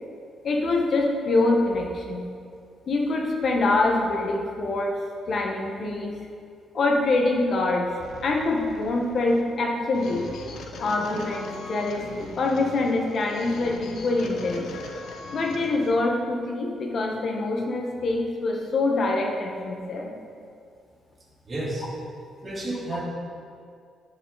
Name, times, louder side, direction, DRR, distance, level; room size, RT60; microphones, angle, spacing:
voice 1, 0.4-2.3 2.9-4.9 5.3-6.2 6.7-7.9 8.2-10.3 10.8-14.7 15.3-20.1, left 2 dB, 45° left, 1 dB, 1.4 m, -25 dB
sound 1, 8.0-15.9, left 3 dB, 75° left, 1.0 m, -41 dB
voice 2, 21.5-21.9 22.4-23.0, right 1 dB, 25° right, -5 dB, 2.6 m, -31 dB
10.5 x 9.1 x 4.1 m, 2.3 s
cardioid pair, 155°, 0 cm